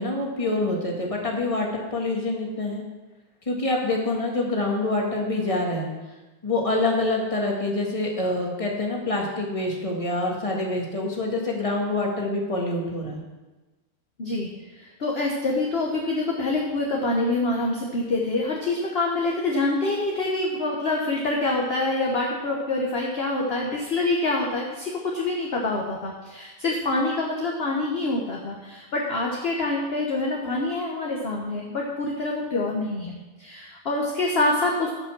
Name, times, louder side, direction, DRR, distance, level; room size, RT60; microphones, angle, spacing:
voice 1, 0.0-2.8 3.4-5.9 6.4-13.2, left 2 dB, 15° left, -1 dB, 1.7 m, -26 dB
voice 2, 14.2-14.5 14.8-34.9, left 2 dB, 35° left, -2 dB, 1.1 m, -26 dB
12.5 x 5.7 x 6.1 m, 1.2 s
omnidirectional pair, 2.3 m